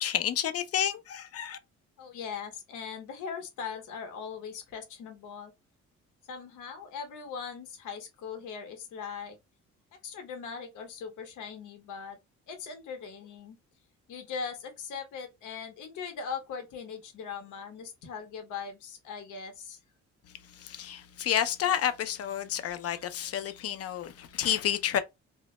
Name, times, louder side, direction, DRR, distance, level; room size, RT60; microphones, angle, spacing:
voice 1, 0.0-1.6 20.5-25.0, left 10 dB, 50° left, 0.5 m, -30 dB
voice 2, 2.0-5.5 6.3-9.4 10.0-12.2 12.5-13.6 14.1-19.8, left 6 dB, 80° left, 0.8 m, -40 dB
2.2 x 2.1 x 2.9 m
cardioid pair, 90°, 30 cm